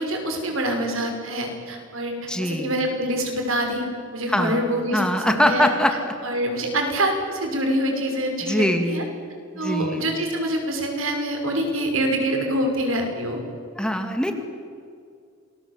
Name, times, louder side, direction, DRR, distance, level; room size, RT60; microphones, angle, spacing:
voice 1, 0.0-2.1 2.4-3.8 4.1-5.7 6.2-9.0 9.6-13.4, right 1 dB, 90° right, 3 dB, 5.8 m, -25 dB
voice 2, 2.3-2.8 4.3-4.6 4.9-6.1 8.4-9.0 9.5-10.0 13.8-14.3, equal, 5° left, 5 dB, 2.3 m, -22 dB
28.0 x 21.0 x 8.2 m, 2.3 s
head